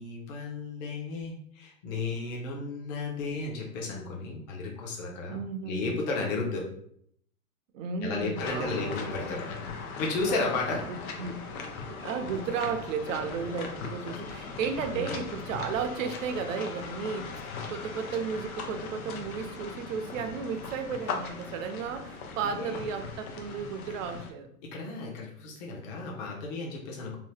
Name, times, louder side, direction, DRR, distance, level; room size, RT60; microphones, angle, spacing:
voice 1, 0.0-6.6 8.0-9.4 10.0-10.8 14.8-15.2 22.5-22.8 24.7-27.2, left 3 dB, 30° left, -2 dB, 0.6 m, -33 dB
voice 2, 5.3-5.9 7.7-9.0 10.9-11.6 11.9-17.4 17.7-24.5, right 6 dB, 60° right, 7 dB, 0.5 m, -34 dB
sound 1, 8.3-24.3, left 4 dB, 70° left, 0.7 m, -39 dB
2.8 x 2.0 x 3.2 m, 0.67 s
hypercardioid pair, 145°, 44 cm